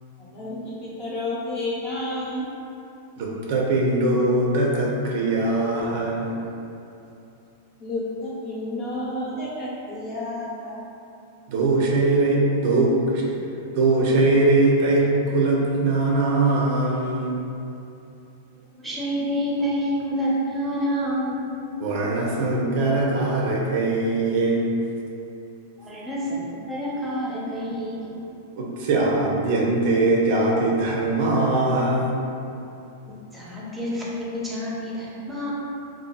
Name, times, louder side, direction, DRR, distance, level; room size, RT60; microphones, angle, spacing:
voice 1, 0.2-2.4 7.8-10.8, left 1 dB, 40° left, -7 dB, 0.7 m, -31 dB
voice 2, 3.2-6.4 11.5-13.4 13.7-15.0 15.3-17.4 21.8-24.7 28.5-32.2, right 2 dB, 60° right, -2 dB, 0.4 m, -21 dB
voice 3, 18.8-21.5 25.8-28.2 33.3-35.5, equal, 10° right, -7 dB, 0.6 m, -28 dB
2.6 x 2.2 x 2.2 m, 2.7 s
hypercardioid pair, 120°, 0 cm